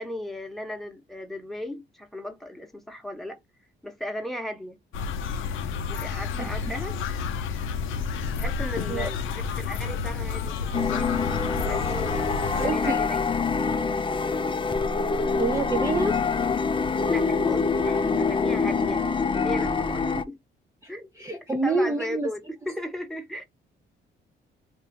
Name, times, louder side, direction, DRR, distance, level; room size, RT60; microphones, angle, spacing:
voice 1, 0.0-3.4 3.8-4.8 5.9-7.0 8.3-11.2 11.7-13.2 15.8-15.9 17.1-19.0 19.3-20.4 20.9-23.4, left 1 dB, ahead, 1.1 m, -36 dB
sound 1, 4.9-12.7, left 5 dB, 80° left, 0.7 m, -30 dB
sound 2, 10.7-20.2, left 4 dB, 25° left, 0.5 m, -25 dB
voice 2, 12.6-13.0 15.3-16.2 20.8-22.3, right 3 dB, 15° right, 0.7 m, -27 dB
2.7 x 2.6 x 3.5 m
cardioid pair, 90°, 20 cm